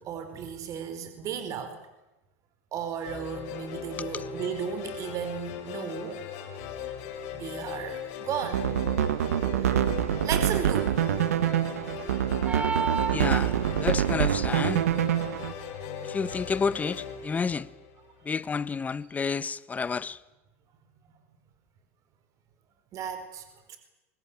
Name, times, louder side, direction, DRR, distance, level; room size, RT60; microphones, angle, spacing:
voice 1, 0.0-1.8 2.7-6.2 7.3-8.7 9.5-9.7 10.2-11.0 15.6-15.9 22.9-23.8, right 8 dB, 45° right, 4.7 m, -35 dB
sound 1, 3.0-18.3, left 7 dB, 60° left, 5.7 m, -39 dB
sound 2, 8.4-15.5, right 11 dB, 85° right, 1.3 m, -26 dB
sound 3, 12.4-13.9, right 5 dB, 20° right, 4.0 m, -31 dB
voice 2, 13.1-14.8 16.0-17.7 18.2-20.2, left 5 dB, 20° left, 1.2 m, -30 dB
24.5 x 20.5 x 9.2 m
hypercardioid pair, 100°, 8 cm